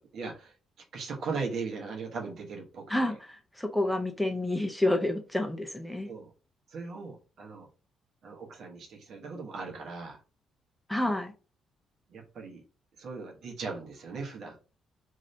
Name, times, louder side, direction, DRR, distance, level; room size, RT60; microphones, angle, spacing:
voice 1, 0.1-0.5 0.9-3.2 6.1-6.3 6.7-7.7 8.2-10.2 12.1-12.6 13.0-14.6, right 4 dB, 65° right, 2 dB, 1.0 m, -38 dB
voice 2, 2.9-6.1 10.9-11.3, left 1 dB, 5° left, 5 dB, 0.6 m, -29 dB
2.7 x 2.7 x 3.2 m, 0.33 s
cardioid pair, 90°, 0 cm